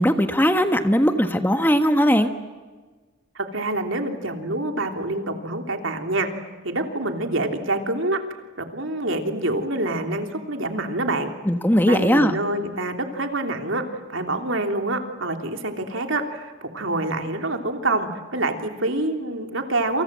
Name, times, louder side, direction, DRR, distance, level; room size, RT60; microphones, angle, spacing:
voice 1, 0.0-2.3 11.4-12.3, equal, 10° left, 7 dB, 1.4 m, -19 dB
voice 2, 3.3-6.3 6.6-8.2 8.6-11.3 11.9-20.0, right 2 dB, 70° right, 4 dB, 3.2 m, -26 dB
28.5 x 28.0 x 7.5 m, 1.4 s
head